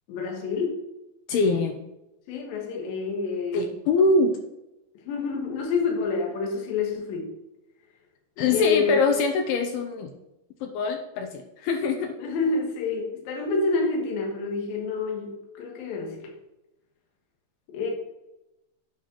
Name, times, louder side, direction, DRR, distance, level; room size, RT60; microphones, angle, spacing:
voice 1, 0.1-0.8 2.3-3.7 5.1-7.3 8.5-9.0 12.2-16.3 17.7-17.9, left 4 dB, 65° left, 0 dB, 2.9 m, -27 dB
voice 2, 1.3-1.8 3.5-4.3 8.4-10.1 10.6-12.2, left 3 dB, 80° left, 6 dB, 2.3 m, -23 dB
9.1 x 5.2 x 4.4 m, 0.93 s
omnidirectional pair, 5.0 m